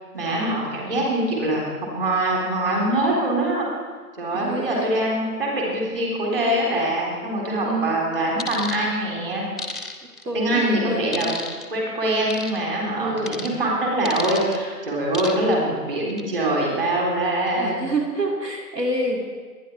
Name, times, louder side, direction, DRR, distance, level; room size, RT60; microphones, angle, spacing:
voice 1, 0.1-3.7 4.2-9.4 10.3-11.3 11.7-17.9, right 1 dB, 35° right, -3 dB, 3.7 m, -23 dB
voice 2, 4.3-4.9 7.6-7.9 10.2-11.4 13.0-13.4 17.5-19.2, right 2 dB, 90° right, 0 dB, 3.0 m, -27 dB
sound 1, 8.4-8.8 9.6-10.2 11.1-11.7 12.3-12.6 13.3-13.5 14.1-14.6 15.1-15.5 16.0-16.2, left 2 dB, ahead, 0.5 m, -32 dB
22.5 x 10.0 x 4.5 m, 1.5 s
hypercardioid pair, 175°, 47 cm